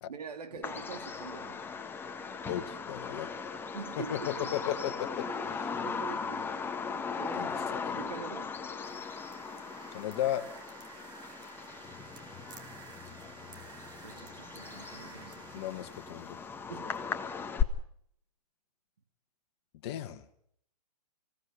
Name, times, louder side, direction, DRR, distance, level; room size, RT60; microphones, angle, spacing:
voice 1, 0.1-1.6 3.7-4.7 5.2-6.4 7.2-7.6 7.9-8.5 14.0-15.6 16.1-16.2 16.7-16.9, right 6 dB, 75° right, 7 dB, 3.1 m, -45 dB
Bird vocalization bird call bird song, 0.6-17.6, left 6 dB, 10° left, 1.6 m, -38 dB
voice 2, 2.5-3.3 4.0-5.7 7.4-7.5 7.8-8.1 9.9-10.5 15.5-16.4 19.8-20.2, left 11 dB, 40° left, 10 dB, 2.0 m, -35 dB
sound 1, 8.8-17.1, right 5 dB, 20° right, 3.3 m, -52 dB
26.5 x 17.5 x 8.7 m, 0.71 s
hypercardioid pair, 135°, 20 cm